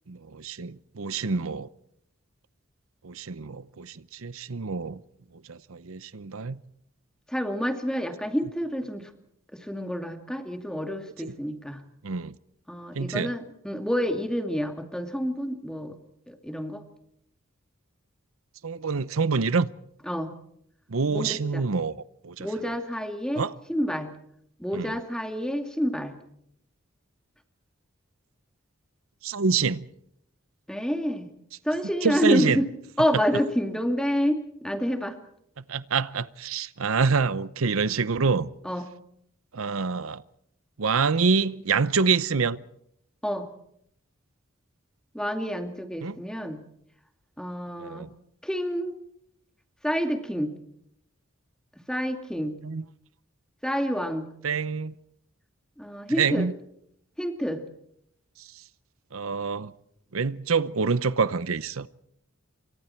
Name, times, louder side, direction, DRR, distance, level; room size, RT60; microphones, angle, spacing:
voice 1, 0.1-1.7 3.0-5.0 5.5-6.6 11.3-11.4 12.0-12.3 12.9-13.3 18.6-19.7 20.9-22.0 22.2-22.5 23.4-23.5 24.7-25.0 29.2-29.8 32.0-32.6 35.7-38.5 39.5-40.2 40.8-42.6 46.0-46.2 47.8-48.1 52.6-52.8 54.4-54.9 56.2-56.5 58.4-58.6 59.1-59.7 60.1-61.9, right 5 dB, 85° right, 0.8 m, -26 dB
voice 2, 7.3-9.1 9.5-11.8 12.7-16.0 16.3-16.8 20.1-20.3 21.1-21.6 22.4-23.4 23.7-24.1 24.6-26.2 30.7-31.3 31.6-32.7 33.0-35.2 38.6-38.9 43.2-43.5 45.1-46.6 47.4-48.1 48.4-48.9 49.8-50.5 51.9-52.6 53.6-54.3 55.8-56.5 57.2-57.6, equal, 5° left, 2.4 m, -28 dB
28.0 x 24.5 x 4.5 m
head